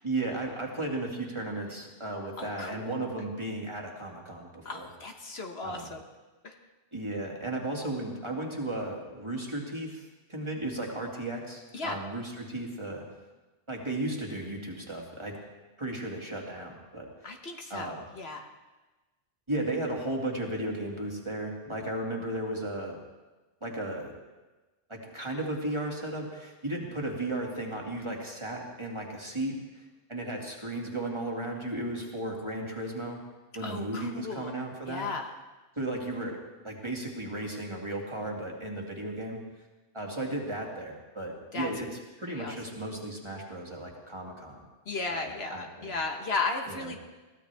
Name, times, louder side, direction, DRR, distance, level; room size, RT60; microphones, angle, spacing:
voice 1, 0.0-4.9 5.6-5.9 6.9-13.1 13.7-15.4 15.8-17.3 17.7-18.1 19.5-23.0 23.6-24.1 24.9-29.6 30.1-33.2 33.5-35.1 35.8-36.4 36.6-39.4 39.9-44.6 45.1-46.0 46.7-46.9, right 1 dB, 25° right, -1 dB, 2.3 m, -35 dB
voice 2, 2.4-2.9 4.6-6.0 6.4-6.6 11.7-12.0 17.2-18.5 33.6-34.5 34.9-35.3 41.5-41.7 42.3-42.5 44.9-47.0, left 3 dB, 60° left, 4 dB, 1.4 m, -35 dB
22.0 x 16.0 x 3.4 m, 1.2 s
omnidirectional pair, 1.2 m